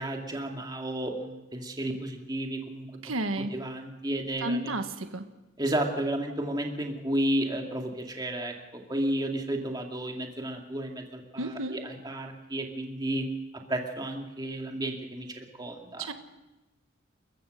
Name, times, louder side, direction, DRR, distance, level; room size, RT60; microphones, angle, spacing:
voice 1, 0.0-2.9 3.5-4.8 5.6-13.3 13.7-16.1, right 1 dB, 20° right, 1 dB, 2.3 m, -32 dB
voice 2, 3.0-3.5 4.4-5.3 11.4-11.8 16.0-16.1, right 2 dB, 90° right, 7 dB, 1.4 m, -32 dB
29.0 x 14.5 x 6.5 m, 1.0 s
head